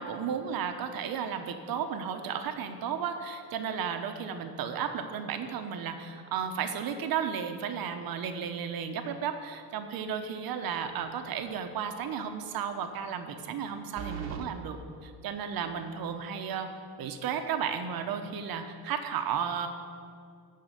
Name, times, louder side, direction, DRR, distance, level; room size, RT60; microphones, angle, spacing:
voice 1, 0.0-16.7 17.0-19.7, right 7 dB, 60° right, 6 dB, 1.1 m, -34 dB
sound 1, 10.8-11.3 11.7-11.8 14.0-14.5, right 7 dB, 80° right, 1.2 m, -39 dB
13.5 x 4.8 x 8.2 m, 2.4 s
cardioid pair, 140°, 39 cm